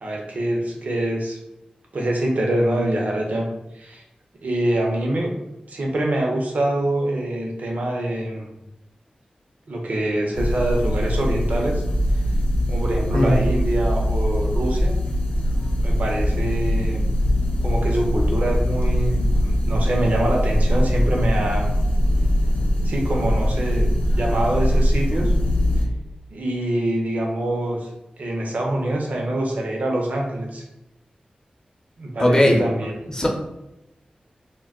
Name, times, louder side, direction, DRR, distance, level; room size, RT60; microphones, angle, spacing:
voice 1, 0.0-1.4 1.9-3.5 3.8-4.0 4.4-5.4 5.7-8.5 9.7-11.8 12.7-15.0 15.8-17.1 17.6-21.7 22.8-25.3 26.3-27.8 28.2-30.6 32.0-32.9, right 1 dB, 70° right, 0 dB, 0.6 m, -25 dB
sound 1, 10.3-25.9, equal, 80° left, 0.5 m, -21 dB
voice 2, 32.2-32.6 33.1-33.3, left 1 dB, 25° left, 0 dB, 0.6 m, -17 dB
2.2 x 2.2 x 3.5 m, 0.91 s
cardioid pair, 55°, 3 cm